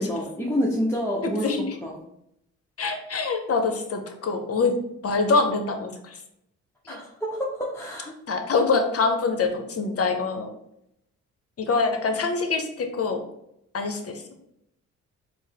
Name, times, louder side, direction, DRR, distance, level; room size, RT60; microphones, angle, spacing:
voice 1, 0.0-1.5 1.8-2.0 6.9-8.1, equal, 10° left, -4 dB, 0.8 m, -28 dB
voice 2, 1.2-1.6 2.8-4.8 5.0-5.9 6.9-7.0 8.3-10.5 11.6-13.2 13.7-14.1, left 4 dB, 45° left, 5 dB, 0.8 m, -24 dB
4.3 x 2.1 x 3.5 m, 0.78 s
supercardioid pair, 50°, 34 cm